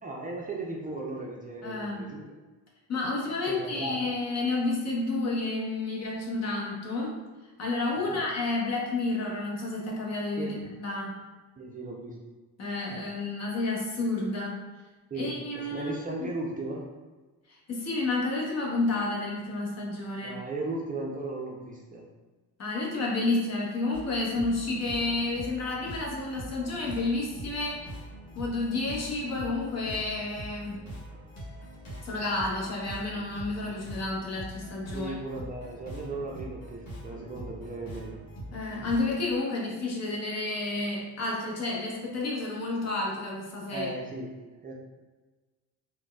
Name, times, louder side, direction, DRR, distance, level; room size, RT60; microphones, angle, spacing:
voice 1, 0.0-2.3 3.5-4.1 8.0-8.2 10.4-10.6 11.6-12.2 15.1-16.9 20.2-22.1 34.9-38.2 43.7-44.3 44.6-44.7, right 2 dB, 25° right, -2 dB, 0.5 m, -36 dB
voice 2, 1.6-2.1 2.9-7.2 7.6-11.2 12.6-14.6 15.2-15.9 16.2-16.3 17.5-20.4 22.6-27.9 28.3-30.8 32.0-35.1 38.5-43.9, left 2 dB, 45° left, -3 dB, 0.9 m, -30 dB
sound 1, 23.9-39.0, right 1 dB, 65° left, 1.4 m, -43 dB
3.9 x 2.2 x 2.3 m, 1.2 s
cardioid pair, 90°, 36 cm